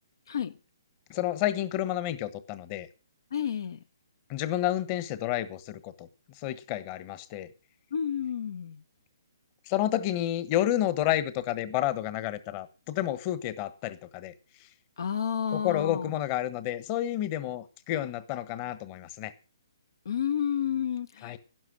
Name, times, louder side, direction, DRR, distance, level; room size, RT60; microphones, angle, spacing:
voice 1, 1.1-2.9 4.3-6.1 6.3-7.5 9.7-14.3 15.5-19.3 21.2-21.4, left 13 dB, 30° left, 1.2 m, -30 dB
voice 2, 3.3-3.8 7.9-8.8 15.0-16.1 20.0-21.4, left 8 dB, 65° left, 0.9 m, -30 dB
12.5 x 11.0 x 6.3 m
hypercardioid pair, 150°, 2 cm